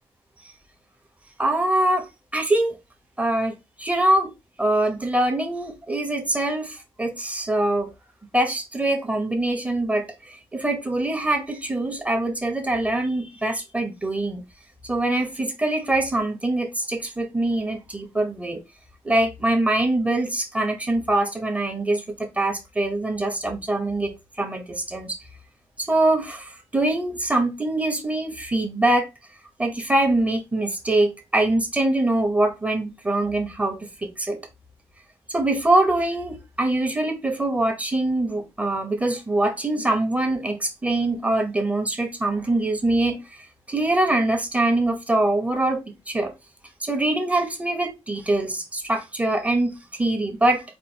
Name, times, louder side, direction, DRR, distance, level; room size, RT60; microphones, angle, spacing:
voice 1, 1.4-2.1 2.3-2.7 3.2-4.3 4.6-7.9 8.3-14.4 14.8-18.6 19.0-25.2 25.8-29.1 29.6-34.4 35.3-43.2 43.7-46.3 46.8-50.6, right 2 dB, 15° right, 1.0 m, -23 dB
4.6 x 2.4 x 4.3 m
wide cardioid pair, 145°, 10 cm